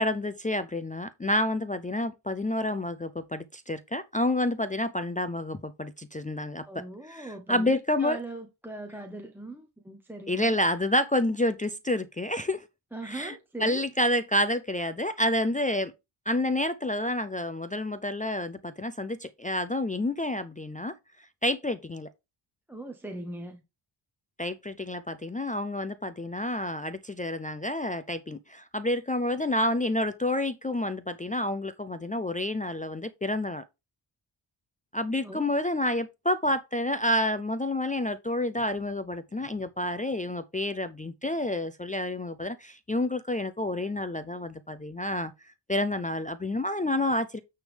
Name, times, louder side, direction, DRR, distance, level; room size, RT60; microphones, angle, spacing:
voice 1, 0.0-6.6 7.1-8.2 10.3-12.6 13.0-15.9 16.3-20.9 21.4-22.1 24.4-33.6 34.9-45.3 45.7-47.4, left 1 dB, 20° left, 0.4 m, -29 dB
voice 2, 6.7-10.6 12.9-13.8 22.7-23.6 35.2-35.5, right 2 dB, 5° right, 0.8 m, -40 dB
9.2 x 3.5 x 4.9 m
wide cardioid pair, 155°, 48 cm